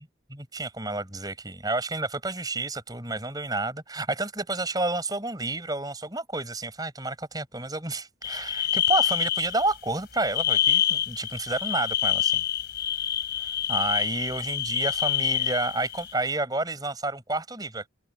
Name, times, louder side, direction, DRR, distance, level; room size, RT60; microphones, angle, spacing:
voice 1, 0.3-12.4 13.4-17.9, right 2 dB, 20° right, 6.9 m, -30 dB
sound 1, 8.2-9.8 10.1-16.1, left 11 dB, 55° left, 4.6 m, -27 dB
head